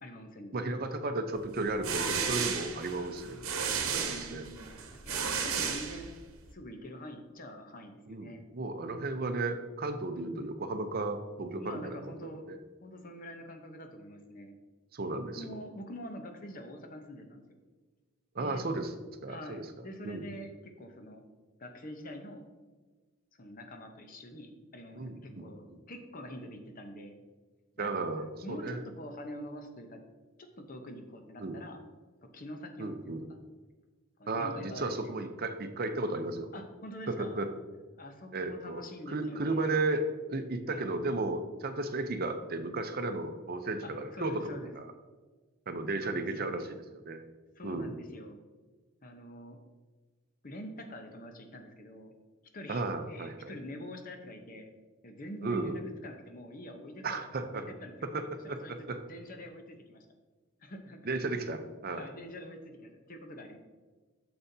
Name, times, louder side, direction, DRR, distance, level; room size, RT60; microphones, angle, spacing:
voice 1, 0.0-0.7 2.6-2.7 4.0-6.1 6.5-8.4 10.1-10.5 11.5-12.4 12.8-14.6 15.3-17.6 18.4-18.6 19.3-21.2 21.6-22.4 23.4-27.2 27.8-28.1 28.4-30.0 30.4-31.8 32.2-33.2 34.2-35.1 36.5-37.4 37.9-39.7 40.7-41.0 43.8-44.7 46.0-46.6 47.6-48.4 49.0-49.6 50.4-52.1 52.5-54.7 55.0-57.9 58.4-60.1 60.6-61.1 62.0-63.6, left 1 dB, 40° left, 5 dB, 0.8 m, -45 dB
voice 2, 0.5-3.4 3.8-4.4 5.2-5.3 8.1-12.2 12.5-12.6 14.9-15.4 18.3-18.9 19.2-19.7 20.0-20.3 25.0-25.4 25.7-25.8 27.8-28.8 31.4-31.6 32.8-33.2 34.3-36.5 37.1-37.5 38.3-44.9 45.7-46.8 47.0-47.2 47.6-47.9 52.7-53.5 55.4-55.8 57.0-57.7 58.0-59.0 61.1-62.1, right 2 dB, 45° right, 7 dB, 0.6 m, -34 dB
sound 1, 1.6-6.4, right 6 dB, 75° right, 1.0 m, -34 dB
9.5 x 6.9 x 2.7 m, 1.3 s
head